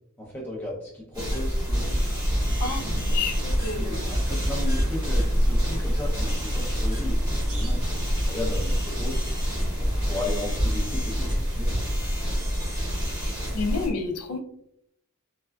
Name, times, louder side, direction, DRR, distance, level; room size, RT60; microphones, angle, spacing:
voice 1, 0.2-2.0 2.5-3.1 3.8-7.8 8.3-9.2 9.8-11.8, left 1 dB, 10° left, -5 dB, 0.5 m, -35 dB
sound 1, 1.1-13.9, equal, 20° right, 0.9 m, -27 dB
sound 2, 1.5-10.3, equal, 75° right, 0.9 m, -32 dB
voice 2, 2.6-4.1 13.5-14.4, left 4 dB, 85° left, 3 dB, 0.5 m, -30 dB
3.2 x 2.3 x 2.2 m, 0.74 s
head